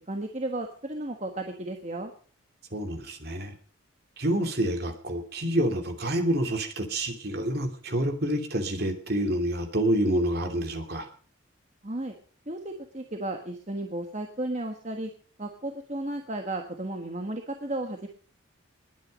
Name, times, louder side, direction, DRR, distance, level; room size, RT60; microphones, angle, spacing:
voice 1, 0.1-2.1 11.8-12.1 12.5-15.1 15.4-18.1, right 1 dB, 35° right, 4 dB, 1.4 m, -34 dB
voice 2, 2.7-3.5 4.2-11.1, right 1 dB, 50° right, 6 dB, 2.9 m, -28 dB
20.5 x 9.4 x 5.3 m, 0.42 s
head